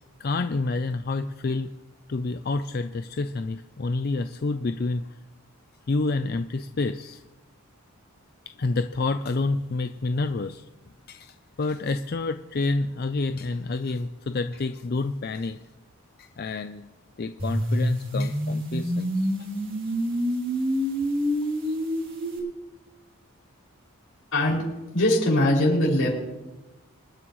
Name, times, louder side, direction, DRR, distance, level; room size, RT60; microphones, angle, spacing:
voice 1, 0.2-1.7 2.1-5.0 5.9-7.2 8.6-10.6 11.1-15.6 16.2-16.9 17.2-19.1 21.7-21.8, left 3 dB, 45° left, 9 dB, 0.4 m, -28 dB
sound 1, 17.4-22.4, equal, 40° right, 2.9 m, -27 dB
voice 2, 24.3-24.6 24.9-26.1, left 1 dB, 80° left, -4 dB, 5.8 m, -21 dB
27.0 x 9.9 x 3.1 m, 1.1 s
head